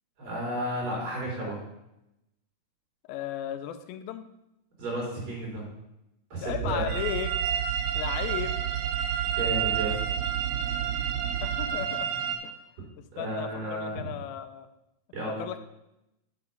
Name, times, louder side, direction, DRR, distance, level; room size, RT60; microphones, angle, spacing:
voice 1, 0.2-1.6 4.8-5.7 6.3-6.8 9.4-10.0 13.1-14.1 15.1-15.4, right 1 dB, 50° right, -3 dB, 4.7 m, -32 dB
voice 2, 3.1-4.2 6.4-7.4 8.0-8.6 11.4-12.1 12.4-12.5 13.2-14.7 15.2-15.6, left 11 dB, 85° left, 10 dB, 2.4 m, -35 dB
sound 1, 6.5-11.7, right 12 dB, 65° right, 1.4 m, -33 dB
sound 2, 6.9-12.4, right 8 dB, 85° right, 2.7 m, -31 dB
8.0 x 5.9 x 5.4 m, 0.88 s
omnidirectional pair, 4.2 m